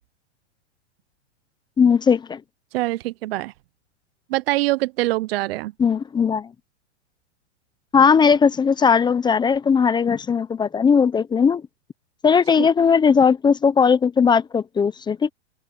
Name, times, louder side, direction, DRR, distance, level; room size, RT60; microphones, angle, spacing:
voice 1, 1.8-2.4 5.8-6.5 7.9-11.6 12.2-15.3, left 6 dB, 10° left, 0.8 m, -18 dB
voice 2, 2.7-3.5 4.3-5.7 12.6-12.7, right 19 dB, 55° right, 0.8 m, -24 dB
open air
hypercardioid pair, 130°, 36 cm